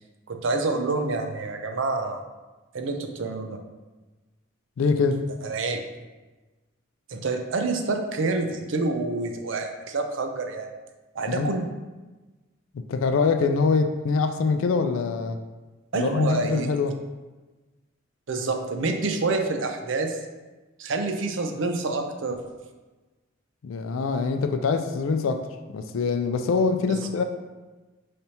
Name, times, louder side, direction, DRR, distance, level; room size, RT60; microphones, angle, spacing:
voice 1, 0.3-2.2 2.7-3.6 5.4-5.8 7.1-10.7 11.1-11.7 15.9-16.7 18.3-20.2 20.8-22.4 26.9-27.0, right 3 dB, 75° right, 4 dB, 0.5 m, -27 dB
voice 2, 4.8-5.3 11.3-11.5 12.7-15.4 15.9-17.0 23.6-25.5 25.7-27.2, left 4 dB, 90° left, 7 dB, 0.4 m, -24 dB
5.4 x 3.3 x 2.8 m, 1.2 s
head